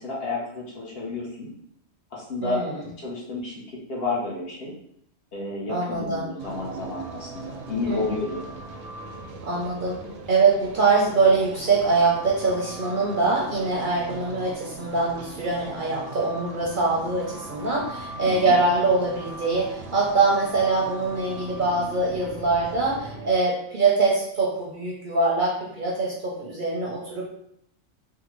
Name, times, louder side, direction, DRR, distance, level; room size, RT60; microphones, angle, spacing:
voice 1, 0.0-1.5 2.1-2.6 3.0-3.6 3.9-4.7 5.3-8.4 18.3-18.5, left 3 dB, 55° left, -4 dB, 1.0 m, -31 dB
voice 2, 2.4-2.9 5.7-6.3 7.9-8.0 9.4-10.0 10.3-27.3, right 3 dB, 50° right, -4 dB, 0.7 m, -23 dB
sound 1, 6.4-23.3, right 2 dB, 85° right, 1.0 m, -40 dB
3.5 x 2.1 x 3.0 m, 0.73 s
omnidirectional pair, 1.3 m